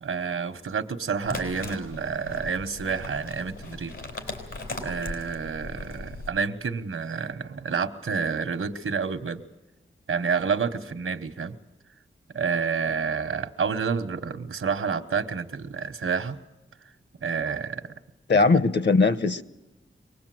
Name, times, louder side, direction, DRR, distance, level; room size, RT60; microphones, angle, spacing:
voice 1, 0.0-4.0 4.8-9.4 10.1-11.6 12.3-16.4 17.2-17.9 18.3-18.4, right 5 dB, 85° right, 11 dB, 1.1 m, -29 dB
sound 1, 1.2-6.3, left 2 dB, 85° left, 4.2 m, -38 dB
voice 2, 18.3-19.4, left 3 dB, 60° left, 13 dB, 1.0 m, -20 dB
24.0 x 19.5 x 7.7 m, 1.0 s
wide cardioid pair, 65°, 21 cm